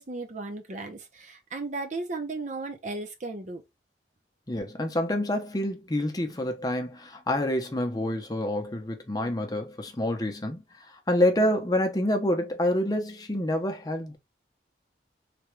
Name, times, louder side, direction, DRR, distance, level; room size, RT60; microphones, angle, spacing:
voice 1, 0.0-3.6, right 3 dB, 40° right, 0.7 m, -35 dB
voice 2, 4.5-10.6 11.1-14.2, left 1 dB, 20° left, 0.6 m, -27 dB
3.4 x 2.3 x 3.0 m
head